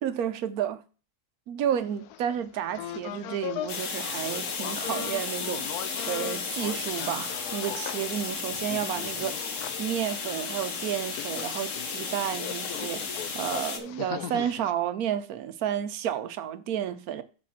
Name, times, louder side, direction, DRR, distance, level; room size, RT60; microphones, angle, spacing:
voice 1, 0.0-0.8 1.5-13.0 13.3-17.2, right 10 dB, 75° right, 1.2 m, -31 dB
sound 1, 1.8-3.8 4.0-14.7, left 12 dB, 80° left, 1.1 m, -40 dB
sound 2, 3.7-13.8, left 5 dB, 55° left, 1.4 m, -34 dB
7.5 x 4.4 x 5.6 m
omnidirectional pair, 1.6 m